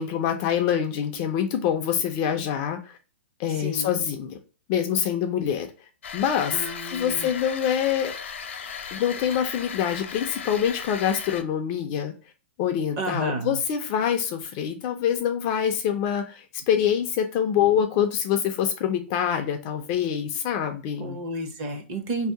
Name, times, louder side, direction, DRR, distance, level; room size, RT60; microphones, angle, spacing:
voice 1, 0.0-3.0 3.4-4.4 4.7-5.7 6.1-8.1 8.9-12.1 12.6-21.2, left 9 dB, 25° left, 5 dB, 0.4 m, -25 dB
voice 2, 3.6-4.0 6.5-7.3 13.0-13.6 21.0-22.3, right 2 dB, 25° right, 6 dB, 0.6 m, -31 dB
sound 1, 6.0-11.4, left 6 dB, 80° left, 0.7 m, -37 dB
3.0 x 2.7 x 4.4 m, 0.35 s
hypercardioid pair, 170°, 7 cm